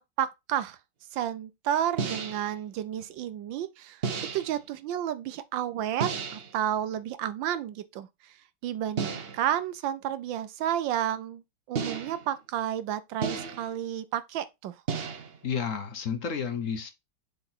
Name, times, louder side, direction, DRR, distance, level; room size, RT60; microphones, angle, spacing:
voice 1, 0.2-0.8 1.1-8.3 8.6-11.4 11.7-14.7, right 10 dB, 75° right, 1.4 m, -31 dB
sound 1, 2.0-2.5 4.0-4.6 6.0-6.6 9.0-9.5 11.7-12.4 13.2-13.8 14.9-15.4, right 5 dB, 55° right, 0.7 m, -33 dB
voice 2, 15.4-16.9, left 7 dB, 55° left, 1.0 m, -31 dB
6.9 x 3.9 x 4.4 m
omnidirectional pair, 2.1 m